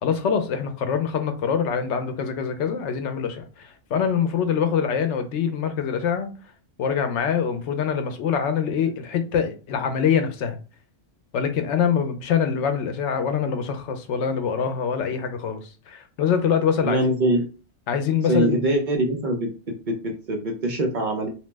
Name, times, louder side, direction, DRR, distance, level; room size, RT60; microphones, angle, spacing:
voice 1, 0.0-6.3 6.8-10.6 11.3-17.1 17.9-18.7, left 7 dB, 85° left, 0.9 m, -24 dB
voice 2, 16.8-17.4 18.3-19.5 19.9-21.3, right 1 dB, 55° right, 0.6 m, -23 dB
2.8 x 2.0 x 3.2 m
omnidirectional pair, 1.2 m